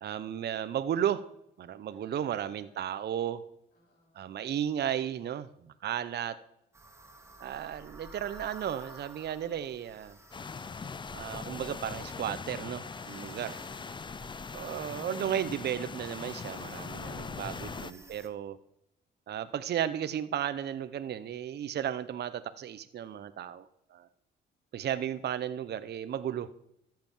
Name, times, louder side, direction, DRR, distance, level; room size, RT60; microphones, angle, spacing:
voice 1, 0.0-1.2 1.6-3.4 4.2-6.3 7.4-10.2 11.1-13.6 14.5-18.6 19.3-24.1 24.7-26.5, right 10 dB, 55° right, 12 dB, 0.8 m, -34 dB
voice 2, 1.9-2.9 3.7-4.4 13.3-14.6 17.0-17.6, left 2 dB, 45° left, -5 dB, 6.9 m, -60 dB
sound 1, 6.7-18.3, right 2 dB, 15° right, 2.3 m, -53 dB
sound 2, 10.3-17.9, left 5 dB, 25° left, 0.5 m, -41 dB
13.5 x 7.7 x 7.2 m, 0.79 s
cardioid pair, 90°, 20 cm